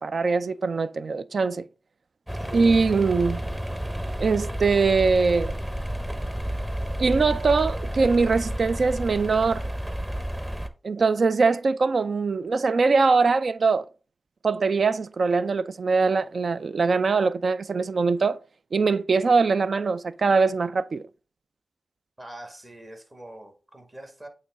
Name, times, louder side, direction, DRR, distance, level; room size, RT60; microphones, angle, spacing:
voice 1, 0.0-1.7 2.5-3.4 4.2-5.5 7.0-9.7 10.8-13.9 14.4-18.4 18.7-21.1, right 4 dB, 65° right, 0.3 m, -22 dB
sound 1, 2.3-10.7, equal, 15° right, 0.9 m, -31 dB
voice 2, 2.4-2.7 22.2-24.3, right 1 dB, 35° right, 1.9 m, -44 dB
8.4 x 3.2 x 3.6 m
cardioid pair, 50°, 0 cm